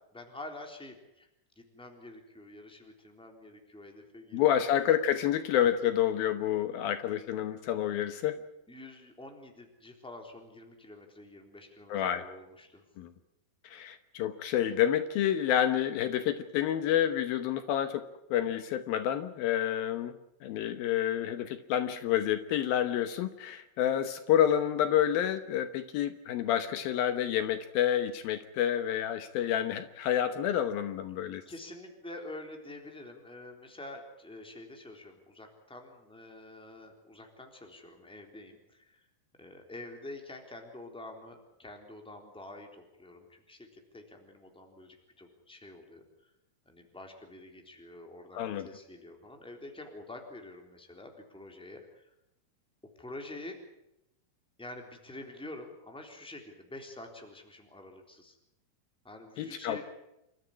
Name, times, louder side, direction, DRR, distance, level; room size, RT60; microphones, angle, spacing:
voice 1, 0.1-1.3 1.5-4.6 8.7-12.8 31.4-39.1 39.4-46.3 46.6-52.1 53.0-53.6 54.6-58.4 59.0-59.9, left 2 dB, ahead, 3 dB, 3.1 m, -47 dB
voice 2, 4.3-8.4 11.9-12.2 13.0-13.1 13.6-18.0 18.3-20.1 20.4-31.4 48.3-48.7 59.4-59.9, left 10 dB, 75° left, 10 dB, 2.7 m, -29 dB
28.5 x 13.5 x 9.8 m, 0.88 s
omnidirectional pair, 4.5 m